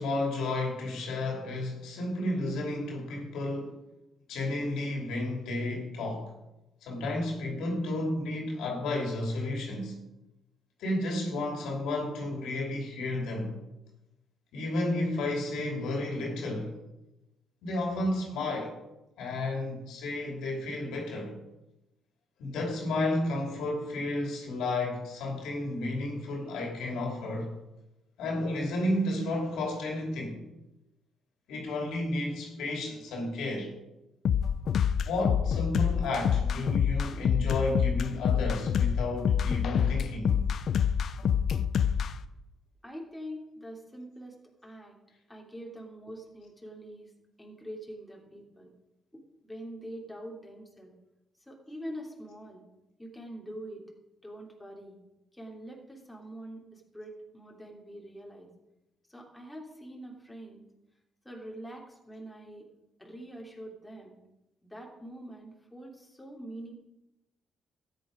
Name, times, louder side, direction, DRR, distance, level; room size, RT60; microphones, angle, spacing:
voice 1, 0.0-3.8 4.3-6.3 6.8-10.0 10.8-13.5 14.5-16.8 17.6-18.8 19.2-21.4 22.4-27.5 28.2-30.4 31.5-33.7 35.0-40.4, left 2 dB, 85° left, 1 dB, 2.9 m, -32 dB
sound 1, 34.2-42.1, left 8 dB, 60° left, 0.6 m, -26 dB
voice 2, 42.8-44.4 44.6-45.0 45.3-47.1 47.4-48.7 49.1-50.9 51.4-52.6 53.0-53.8 54.2-55.0 55.3-58.5 59.1-60.7 61.2-62.7 63.0-64.2 64.6-66.7, right 1 dB, 5° left, -1 dB, 3.0 m, -44 dB
13.0 x 8.9 x 5.1 m, 0.96 s
cardioid pair, 90°, 0 cm